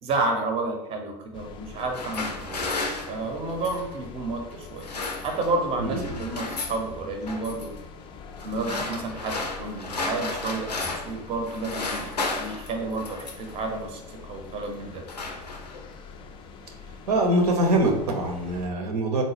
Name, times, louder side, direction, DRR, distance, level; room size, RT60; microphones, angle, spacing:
voice 1, 0.0-4.9 5.2-7.7 8.4-15.0, right 3 dB, 30° right, 3 dB, 0.6 m, -31 dB
sound 1, 1.3-18.7, left 5 dB, 25° left, 0.3 m, -44 dB
sound 2, 1.7-3.9 4.6-5.7 5.9-6.8 7.3-7.7 8.4-11.2 11.5-13.6 14.3-14.6 14.9-15.9, left 3 dB, 80° left, 0.5 m, -33 dB
voice 2, 5.8-6.2 17.1-19.2, right 1 dB, 70° right, 1 dB, 0.7 m, -23 dB
3.9 x 2.1 x 3.2 m, 0.90 s
figure-of-eight pair, 80°, 21 cm